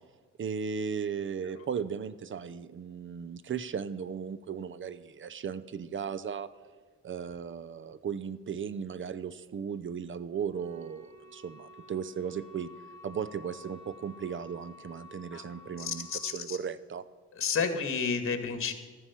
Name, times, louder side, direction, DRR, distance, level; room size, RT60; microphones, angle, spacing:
voice 1, 0.4-6.5 7.0-12.7 13.0-17.0, right 7 dB, 40° right, 16 dB, 0.7 m, -36 dB
Wind instrument woodwind instrument, 10.5-16.3, left 3 dB, 20° right, 4.5 m, -52 dB
voice 2, 15.8-16.6 17.3-18.7, left 5 dB, 45° left, 7 dB, 1.9 m, -31 dB
13.5 x 9.8 x 5.8 m, 1.5 s
cardioid pair, 90°, 30 cm